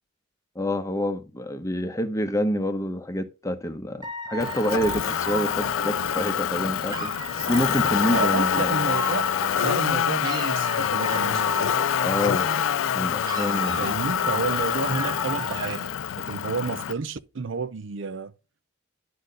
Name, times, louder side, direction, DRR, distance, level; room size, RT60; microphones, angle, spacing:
voice 1, 0.6-7.1 7.5-8.8 12.0-12.5 12.9-14.0, left 1 dB, 15° left, 0.8 m, -27 dB
Dog / Alarm, 4.0-9.9 10.2-12.9 13.2-15.9, right 2 dB, 20° right, 0.7 m, -35 dB
Motor vehicle (road), 4.4-16.9, left 9 dB, 70° left, 0.3 m, -26 dB
voice 2, 8.1-9.3 9.6-11.6 13.8-15.8 16.1-18.3, right 4 dB, 65° right, 0.6 m, -30 dB
10.5 x 4.2 x 5.1 m
head